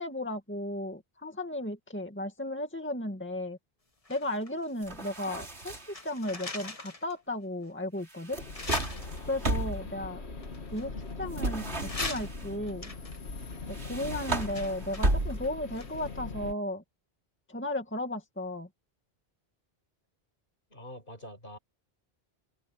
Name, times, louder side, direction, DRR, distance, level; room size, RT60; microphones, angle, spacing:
voice 1, 0.0-3.6 4.1-8.4 9.3-10.3 10.7-12.9 13.8-16.8 17.5-18.7, left 1 dB, 10° left, 2.1 m, -35 dB
sound 1, 4.0-5.3 5.6-7.1 7.6-7.7 8.5-9.5 10.4-11.4 11.8-16.2 16.5-16.6, left 3 dB, 35° left, 1.6 m, -41 dB
sound 2, 4.8-6.1 8.1-9.9 11.3-12.5 13.7-15.7, right 2 dB, 90° right, 3.8 m, -33 dB
sound 3, 8.4-16.5, left 3 dB, 85° left, 2.3 m, -41 dB
voice 2, 20.7-21.6, left 1 dB, 55° left, 5.3 m, -45 dB
omnidirectional pair, 1.1 m